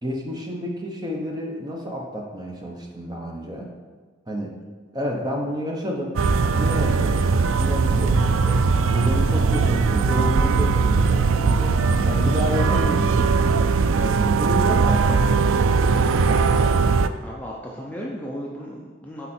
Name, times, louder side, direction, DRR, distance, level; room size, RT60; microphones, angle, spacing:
voice 1, 0.0-3.7 4.3-4.5 4.9-6.2 6.5-8.6 8.9-11.8 12.1-13.5 13.9-16.8, equal, 20° right, -1 dB, 0.9 m, -30 dB
sound 1, 6.2-17.1, right 4 dB, 85° right, 0.4 m, -19 dB
voice 2, 17.2-19.3, equal, 10° left, -4 dB, 0.7 m, -35 dB
8.6 x 4.0 x 4.4 m, 1.4 s
head